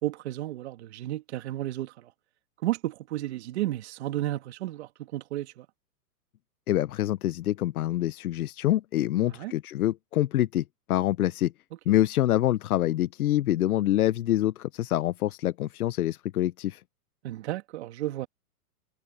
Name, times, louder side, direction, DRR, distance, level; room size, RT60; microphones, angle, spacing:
voice 1, 0.0-2.1 2.6-5.7 9.2-9.5 11.9-12.0 17.2-18.3, right 15 dB, 45° right, 2.3 m, -33 dB
voice 2, 6.7-11.5 11.9-16.8, left 13 dB, 70° left, 0.8 m, -26 dB
hypercardioid pair, 165°, 46 cm